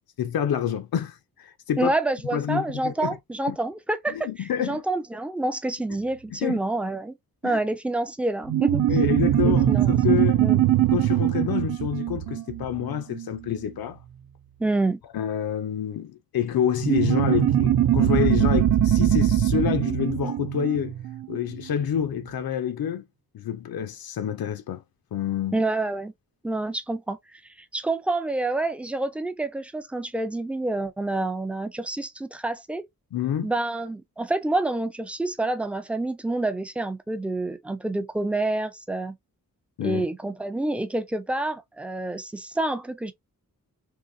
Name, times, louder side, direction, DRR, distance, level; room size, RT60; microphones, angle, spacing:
voice 1, 0.2-1.9 2.3-3.2 3.5-3.6 4.1-4.8 6.4-6.6 7.4-7.6 8.9-10.4 10.9-14.0 15.1-20.9 21.3-23.0 23.3-24.8 25.1-25.6 33.1-33.5 39.8-40.1, left 9 dB, 80° left, 0.5 m, -27 dB
voice 2, 1.8-7.2 7.4-8.9 9.4-10.6 14.6-15.0 25.5-26.1 26.4-32.9 33.4-39.2 39.8-43.1, right 2 dB, 5° right, 0.3 m, -28 dB
sound 1, 8.5-13.4 16.8-21.7, right 11 dB, 65° right, 0.5 m, -22 dB
3.8 x 3.0 x 2.6 m
wide cardioid pair, 155°, 35 cm